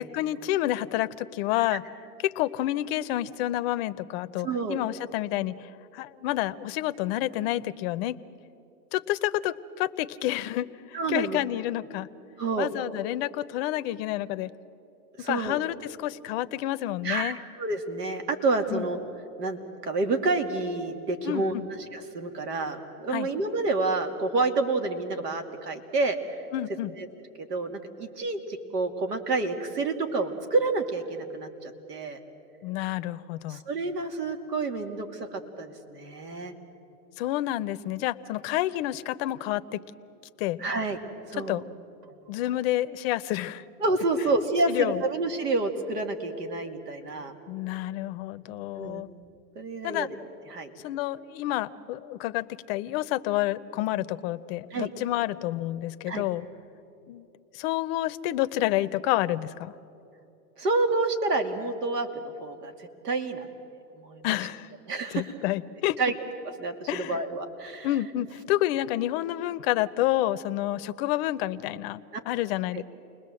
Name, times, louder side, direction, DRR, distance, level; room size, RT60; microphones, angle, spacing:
voice 1, 0.0-1.8 2.2-5.5 5.9-8.2 8.9-12.1 12.6-14.5 15.2-17.4 18.7-18.8 21.2-21.6 23.1-23.3 26.5-26.9 32.6-33.6 37.2-39.8 40.4-40.6 41.4-41.6 42.3-43.6 44.7-45.0 47.5-49.1 49.8-50.1 50.8-56.4 57.1-57.3 57.5-59.7 64.2-64.7 65.1-66.0 66.9-67.2 67.8-72.8, left 15 dB, 40° left, 14 dB, 0.7 m, -29 dB
voice 2, 4.4-4.8 10.9-11.4 12.4-12.7 15.2-15.6 17.0-19.0 19.4-26.4 27.0-27.1 27.4-32.2 33.5-36.5 40.6-41.0 41.3-41.6 43.8-47.3 48.8-49.0 49.6-50.1 50.5-50.7 54.7-54.9 56.1-56.3 60.6-63.5 63.9-64.5 64.9-65.2 66.0-66.1 66.6-67.9 72.1-72.2 72.7-72.8, right 3 dB, 80° right, 6 dB, 2.7 m, -29 dB
29.0 x 20.5 x 7.7 m, 2.8 s
hypercardioid pair, 125°, 47 cm